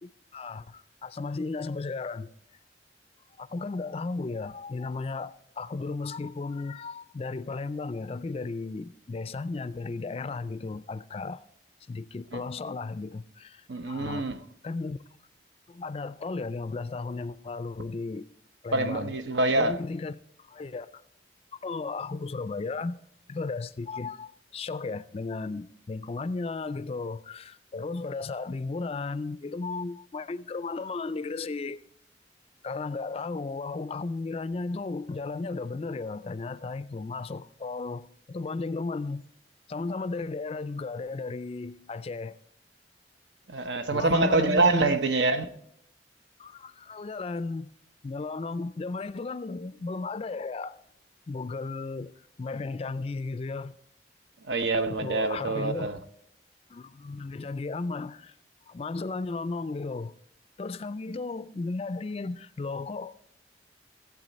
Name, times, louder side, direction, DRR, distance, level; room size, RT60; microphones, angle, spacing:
voice 1, 0.0-2.3 3.4-11.4 11.9-14.3 14.6-15.0 15.7-18.3 18.6-19.1 19.6-20.9 21.5-23.0 23.3-31.8 32.6-39.3 39.7-42.4 43.9-45.0 46.4-47.7 48.0-50.8 51.3-52.1 52.4-53.7 55.0-55.9 56.7-58.4 58.7-60.1 60.6-63.2, left 3 dB, 35° left, 0.3 m, -35 dB
voice 2, 13.7-14.4 18.7-19.8 43.5-45.5 54.5-56.0, right 2 dB, 80° right, 0.9 m, -25 dB
15.0 x 8.1 x 4.1 m
head